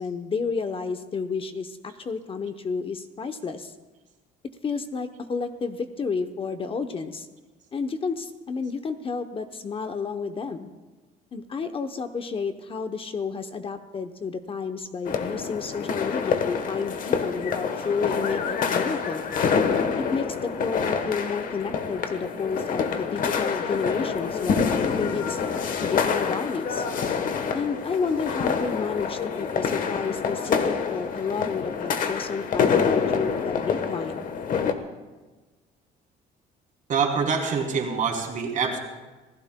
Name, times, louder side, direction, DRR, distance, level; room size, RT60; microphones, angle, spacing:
voice 1, 0.0-3.7 4.6-7.3 7.7-10.7 11.3-19.2 20.0-25.4 25.7-26.8 27.5-34.3, left 5 dB, 35° left, 8 dB, 0.8 m, -31 dB
sound 1, 15.0-34.7, left 6 dB, 55° left, 1.1 m, -27 dB
voice 2, 36.9-38.8, right 5 dB, 50° right, 2 dB, 2.8 m, -25 dB
26.0 x 16.5 x 2.2 m, 1.2 s
cardioid pair, 110°, 17 cm